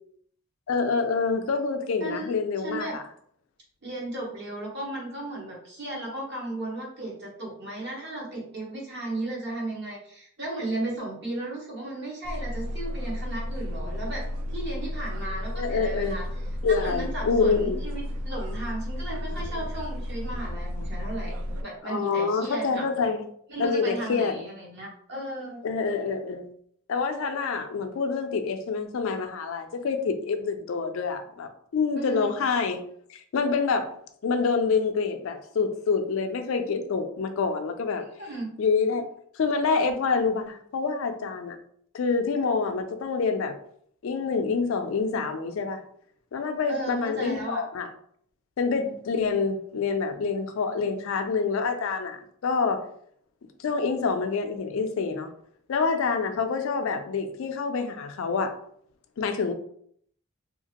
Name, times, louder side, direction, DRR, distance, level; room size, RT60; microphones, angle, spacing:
voice 1, 0.7-3.0 15.5-16.2 16.6-17.8 21.8-23.2 23.6-24.4 25.6-26.4 26.9-32.8 33.1-33.9 34.2-38.0 38.6-39.0 39.4-41.6 41.9-43.6 44.0-45.8 46.3-47.9 48.6-52.8 53.6-55.3 55.7-58.5 59.2-59.5, left 5 dB, 65° left, 7 dB, 0.4 m, -27 dB
voice 2, 2.0-3.0 3.8-14.2 14.5-16.3 16.7-21.3 21.6-22.8 23.5-25.6 32.0-32.3 38.2-38.5 46.7-47.6, right 1 dB, 50° right, -3 dB, 1.0 m, -35 dB
sound 1, 12.2-21.6, left 1 dB, 75° right, 0.4 m, -33 dB
2.8 x 2.5 x 2.8 m, 0.66 s
head